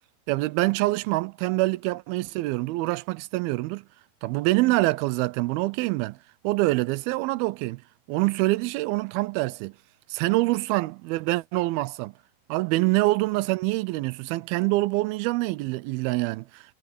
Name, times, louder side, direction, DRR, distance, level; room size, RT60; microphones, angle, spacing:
voice 1, 0.3-3.9 4.2-6.2 6.4-7.8 8.1-9.7 10.1-12.1 12.5-16.6, right 20 dB, 85° right, 2.5 m, -25 dB
omnidirectional pair, 4.3 m